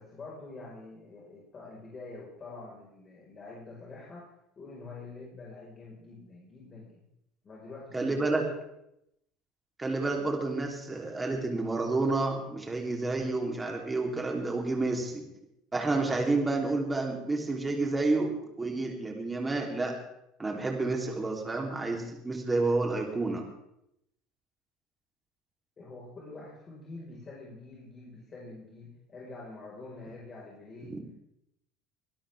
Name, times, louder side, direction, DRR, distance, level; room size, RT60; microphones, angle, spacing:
voice 1, 0.0-4.3 4.5-7.0 7.4-8.4 25.8-30.9, left 3 dB, 35° left, -4 dB, 5.2 m, -46 dB
voice 2, 7.9-8.5 9.8-15.2 15.7-19.9 20.4-23.4 30.9-31.0, right 3 dB, 20° right, 1 dB, 3.6 m, -30 dB
23.0 x 12.5 x 3.6 m, 0.80 s
hypercardioid pair, 75°, 0 cm